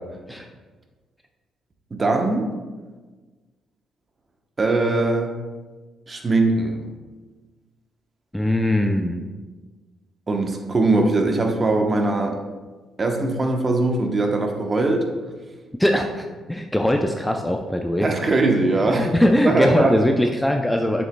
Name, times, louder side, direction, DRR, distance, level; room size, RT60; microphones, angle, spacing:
voice 1, 1.9-2.5 4.6-5.3 6.1-6.8 10.3-12.4 13.0-15.1 18.0-19.1 19.4-19.9, right 2 dB, 30° right, 3 dB, 0.9 m, -21 dB
voice 2, 8.3-9.2 15.8-18.1 19.0-21.0, left 1 dB, 5° left, 3 dB, 0.4 m, -21 dB
7.5 x 6.4 x 2.2 m, 1.3 s
cardioid pair, 90°, 0 cm